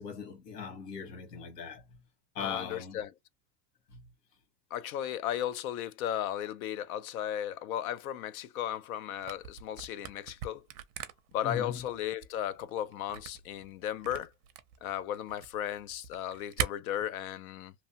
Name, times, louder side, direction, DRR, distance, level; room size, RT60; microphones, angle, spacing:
voice 1, 0.0-1.8 2.3-3.0 3.9-4.0 11.4-11.8, left 6 dB, 80° left, 1.6 m, -39 dB
voice 2, 2.4-3.1 4.7-10.6 11.3-14.3 14.8-17.7, left 11 dB, 65° left, 0.5 m, -35 dB
Camera, 9.2-16.7, right 9 dB, 60° right, 0.6 m, -41 dB
2.9 x 2.1 x 2.8 m
supercardioid pair, 175°, 47 cm